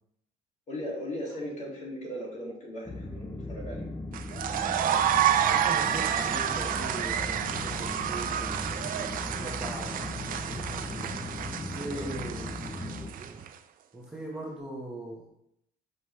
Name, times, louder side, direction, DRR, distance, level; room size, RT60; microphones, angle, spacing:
voice 1, 0.7-3.9 11.8-12.1, equal, 45° left, -3 dB, 2.5 m, -38 dB
sound 1, 2.9-13.1, left 2 dB, 15° left, 0.6 m, -38 dB
sound 2, 4.1-13.5, right 10 dB, 55° right, 0.5 m, -29 dB
voice 2, 5.5-9.0 9.4-11.1 11.6-12.5 13.9-15.2, right 1 dB, 5° right, -4 dB, 1.5 m, -40 dB
sound 3, 7.4-13.5, right 3 dB, 30° right, 0.9 m, -46 dB
5.9 x 5.4 x 3.3 m, 0.75 s
cardioid pair, 110°, 17 cm